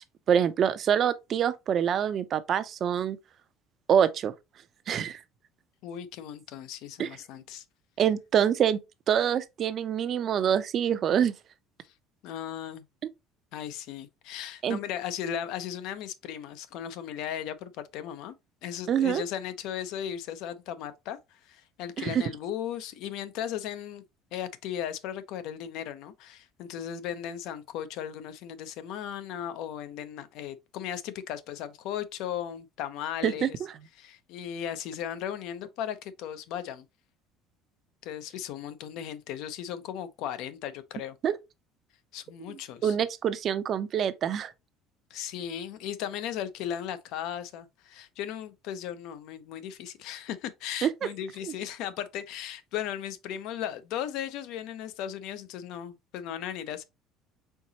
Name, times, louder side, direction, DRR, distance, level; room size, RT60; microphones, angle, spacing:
voice 1, 0.0-3.2 3.9-4.3 4.9-5.2 7.0-7.1 8.0-8.8 9.1-11.3 14.6-14.8 18.9-19.2 22.0-22.2 33.2-33.5 41.2-41.4 42.8-44.5 50.8-50.9 51.4-51.5, right 8 dB, 40° right, 0.5 m, -25 dB
voice 2, 5.8-7.6 12.2-12.8 13.5-18.3 18.6-24.0 24.3-33.6 34.0-36.8 38.0-41.1 42.1-42.9 45.1-56.8, left 10 dB, 65° left, 0.7 m, -36 dB
4.5 x 3.9 x 2.8 m
cardioid pair, 145°, 0 cm